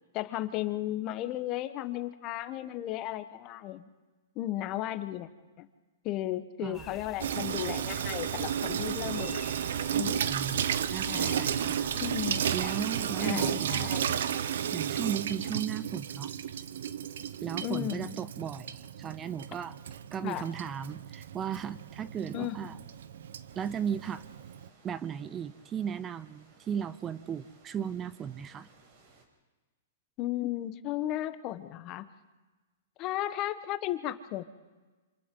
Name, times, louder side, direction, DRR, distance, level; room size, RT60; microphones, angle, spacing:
voice 1, 0.1-3.9 4.3-5.3 5.6-5.7 6.0-9.4 9.9-10.2 11.1-11.6 12.0-12.5 13.2-14.1 17.6-18.2 20.2-20.4 22.3-22.8 30.2-32.1 33.0-34.4, left 14 dB, 35° left, 11 dB, 1.3 m, -35 dB
sound 1, 6.7-13.5, left 3 dB, 20° left, 3.4 m, -49 dB
Water tap faucet / Sink (filling or washing), 7.2-24.7, right 9 dB, 70° right, 0.9 m, -33 dB
voice 2, 10.2-12.2 12.5-13.9 14.7-16.3 17.4-19.8 20.1-22.8 23.6-24.2 24.8-28.7, right 8 dB, 20° right, 15 dB, 0.6 m, -36 dB
sound 2, 23.5-29.2, right 4 dB, 50° right, 5.1 m, -61 dB
27.5 x 27.0 x 3.9 m, 1.2 s
hypercardioid pair, 125°, 0 cm